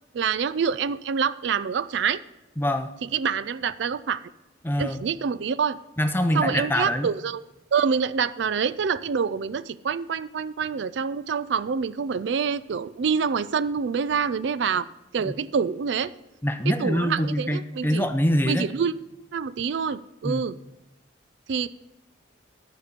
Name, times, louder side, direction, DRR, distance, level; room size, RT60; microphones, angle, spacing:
voice 1, 0.1-2.2 3.1-4.2 4.8-5.8 6.3-7.4 7.7-14.9 15.1-16.1 16.7-18.1 18.4-20.6 21.5-21.7, right 6 dB, 70° right, 16 dB, 0.4 m, -26 dB
voice 2, 2.6-2.9 4.6-5.0 6.0-7.1 15.2-15.3 16.4-18.7 20.2-20.4, equal, 10° left, 8 dB, 0.6 m, -24 dB
12.0 x 5.2 x 6.8 m, 0.99 s
head